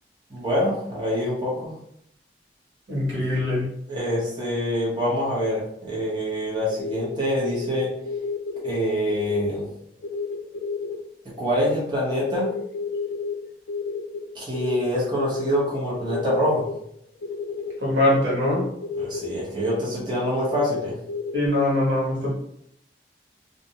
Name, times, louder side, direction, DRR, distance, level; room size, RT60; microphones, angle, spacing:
voice 1, 0.3-1.7 3.9-7.9 8.6-9.7 11.4-12.5 14.3-16.7 19.0-20.9, equal, 25° right, -6 dB, 0.8 m, -25 dB
voice 2, 2.9-3.7 17.8-18.6 21.3-22.3, left 1 dB, 80° right, -5 dB, 1.1 m, -22 dB
sound 1, 6.7-8.7 9.1-9.6 10.0-11.0 12.1-13.4 13.7-15.7 16.0-16.7 17.2-17.7 18.3-19.3 19.9-21.5, left 4 dB, 90° left, 0.4 m, -31 dB
2.4 x 2.0 x 2.8 m, 0.71 s
head